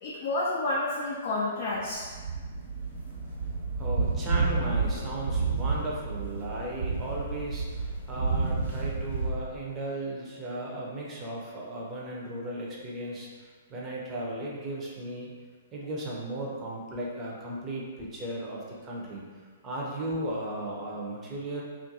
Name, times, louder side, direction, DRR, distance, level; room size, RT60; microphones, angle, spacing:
voice 1, 0.0-2.1, left 2 dB, 45° left, -6 dB, 0.4 m, -30 dB
sound 1, 1.8-9.3, right 4 dB, 80° right, 1.2 m, -30 dB
voice 2, 3.8-15.3 15.7-19.2 19.6-21.6, right 1 dB, 25° right, -4 dB, 0.6 m, -36 dB
2.5 x 2.4 x 2.6 m, 1.5 s
figure-of-eight pair, 115°, 0 cm